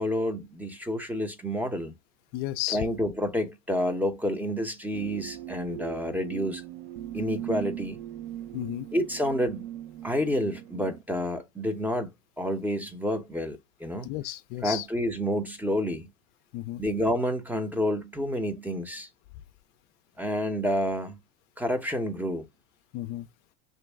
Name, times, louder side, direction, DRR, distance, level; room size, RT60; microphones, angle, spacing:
voice 1, 0.0-1.9 2.7-6.6 7.1-8.0 8.9-9.7 10.0-12.1 12.4-14.1 14.6-16.1 16.8-19.1 20.2-21.2 21.6-22.5, equal, 5° right, 0.7 m, -29 dB
voice 2, 2.3-2.8 8.5-8.9 14.0-14.9 16.5-16.8 22.9-23.3, left 15 dB, 55° left, 0.4 m, -33 dB
sound 1, 4.9-11.0, right 12 dB, 70° right, 0.7 m, -39 dB
3.0 x 2.6 x 3.4 m
hypercardioid pair, 95°, 34 cm